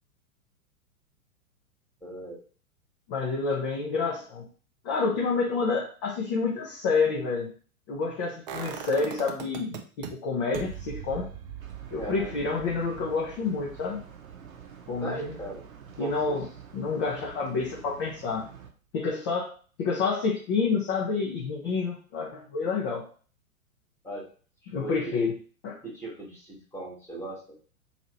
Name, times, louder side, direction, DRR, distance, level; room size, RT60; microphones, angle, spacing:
voice 1, 2.0-2.4 11.9-12.3 15.0-15.6 16.0-16.2 24.0-24.3 24.7-25.2 25.8-27.6, right 1 dB, 5° left, -4 dB, 1.3 m, -38 dB
voice 2, 3.1-4.4 4.8-7.5 7.9-11.3 11.9-14.0 14.9-15.4 16.0-16.5 16.7-18.5 18.9-19.5 19.8-23.0 24.7-25.3 25.6-25.8, left 4 dB, 25° left, -2 dB, 0.5 m, -28 dB
sound 1, 8.5-10.1 10.5-16.4 16.7-16.8, right 9 dB, 30° right, 0.5 m, -41 dB
sound 2, 11.6-18.7, right 7 dB, 70° right, 0.8 m, -47 dB
3.0 x 2.7 x 4.0 m, 0.40 s
figure-of-eight pair, 105°, 44 cm